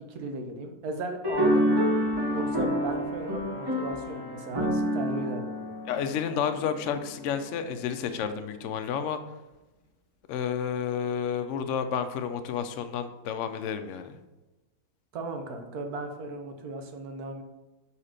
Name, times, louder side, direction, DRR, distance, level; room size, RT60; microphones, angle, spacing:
voice 1, 0.1-1.9 2.3-5.8 15.1-17.4, right 2 dB, 75° right, 5 dB, 1.3 m, -36 dB
sound 1, 1.2-6.8, equal, 20° right, 0.7 m, -28 dB
voice 2, 5.9-9.2 10.3-14.2, left 7 dB, 65° left, 9 dB, 0.8 m, -31 dB
5.0 x 4.2 x 5.0 m, 1.1 s
omnidirectional pair, 1.6 m